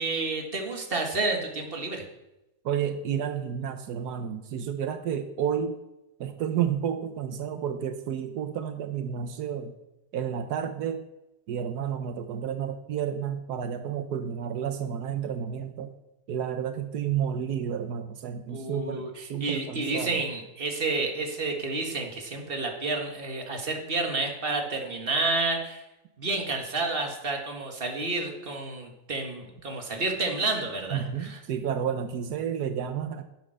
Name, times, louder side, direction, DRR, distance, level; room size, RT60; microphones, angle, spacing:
voice 1, 0.0-2.0 18.5-25.8 26.2-31.4, right 3 dB, 35° right, 2 dB, 2.0 m, -30 dB
voice 2, 2.6-5.8 6.2-9.7 10.1-11.0 11.5-15.9 16.3-20.2 30.9-33.2, right 8 dB, 90° right, 8 dB, 1.4 m, -31 dB
11.0 x 7.4 x 6.3 m, 0.93 s
omnidirectional pair, 1.7 m